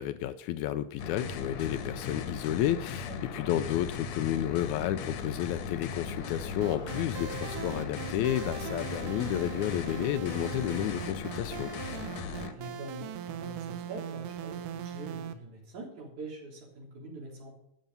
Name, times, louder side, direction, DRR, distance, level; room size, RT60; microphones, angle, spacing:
voice 1, 0.0-11.7, left 12 dB, 85° left, 11 dB, 1.7 m, -31 dB
sound 1, 1.0-12.5, left 5 dB, 60° left, 2.1 m, -38 dB
voice 2, 3.1-3.5 12.5-17.5, right 2 dB, 60° right, -1 dB, 4.8 m, -44 dB
sound 2, 4.3-11.0, left 1 dB, 30° right, 1.4 m, -52 dB
sound 3, 6.6-15.3, right 9 dB, 75° right, 2.4 m, -40 dB
13.0 x 9.3 x 5.5 m, 0.78 s
omnidirectional pair, 4.0 m